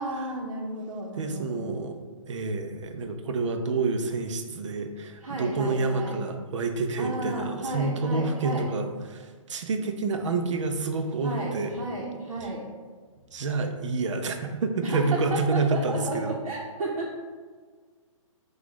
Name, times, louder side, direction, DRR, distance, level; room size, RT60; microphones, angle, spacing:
voice 1, 0.0-1.7 5.2-6.2 7.0-8.7 11.2-12.6 14.8-17.1, right 2 dB, 85° right, -4 dB, 0.9 m, -33 dB
voice 2, 1.2-1.9 2.3-11.7 13.3-16.4, right 3 dB, 60° right, 6 dB, 0.5 m, -28 dB
5.9 x 2.4 x 3.0 m, 1.5 s
hypercardioid pair, 170°, 17 cm